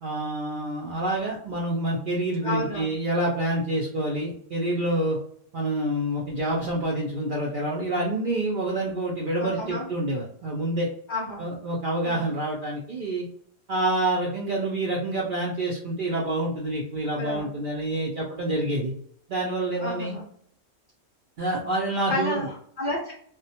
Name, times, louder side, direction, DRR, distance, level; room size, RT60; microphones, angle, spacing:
voice 1, 0.0-5.2 5.5-10.9 11.4-13.3 13.7-18.9 19.3-20.2 21.4-22.5, right 1 dB, 65° right, -3 dB, 0.5 m, -27 dB
voice 2, 2.4-2.9 9.4-9.9 11.1-11.4 12.0-12.3 17.2-17.5 19.8-20.2 22.1-23.1, left 2 dB, 55° left, -4 dB, 0.5 m, -31 dB
2.2 x 2.1 x 2.7 m, 0.62 s
omnidirectional pair, 1.3 m